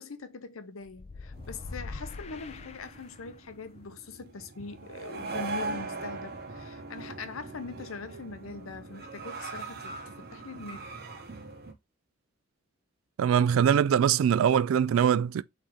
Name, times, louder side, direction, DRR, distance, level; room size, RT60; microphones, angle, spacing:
voice 1, 0.0-10.9, left 4 dB, 85° left, 0.7 m, -42 dB
sound 1, 0.9-3.5, left 3 dB, 30° left, 0.4 m, -43 dB
sound 2, 1.3-11.7, right 3 dB, 50° right, 0.8 m, -41 dB
voice 2, 13.2-15.4, right 8 dB, 80° right, 0.3 m, -22 dB
4.2 x 3.3 x 3.7 m
head